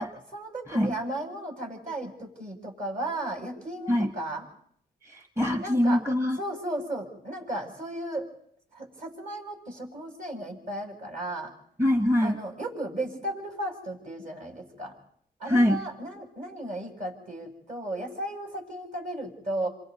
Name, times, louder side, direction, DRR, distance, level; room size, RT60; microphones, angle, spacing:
voice 1, 0.0-4.4 5.6-6.0 6.4-8.3 8.7-11.5 12.2-14.9 15.4-19.7, right 1 dB, 50° right, 1 dB, 7.8 m, -35 dB
voice 2, 5.0-6.4 11.8-12.4 15.5-15.8, left 1 dB, 15° right, 6 dB, 1.4 m, -24 dB
28.5 x 26.0 x 4.2 m, 0.66 s
cardioid pair, 85°, 17 cm